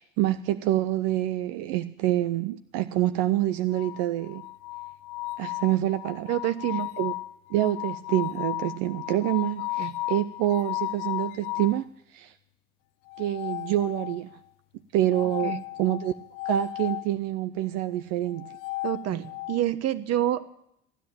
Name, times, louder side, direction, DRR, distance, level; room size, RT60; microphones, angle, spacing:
voice 1, 0.0-4.4 5.4-6.3 7.0-7.1 7.5-11.8 12.1-12.3 13.2-14.4 14.9-16.1 16.4-18.5, right 13 dB, 85° right, 11 dB, 0.6 m, -27 dB
sound 1, 3.7-11.8 13.1-14.4 15.1-17.1 18.3-19.6, left 21 dB, 85° left, 0.6 m, -34 dB
voice 2, 6.3-6.9 9.8-9.9 15.4-15.6 18.8-20.5, right 12 dB, 55° right, 12 dB, 1.2 m, -27 dB
15.0 x 10.5 x 8.9 m, 0.79 s
supercardioid pair, 95°, 30 cm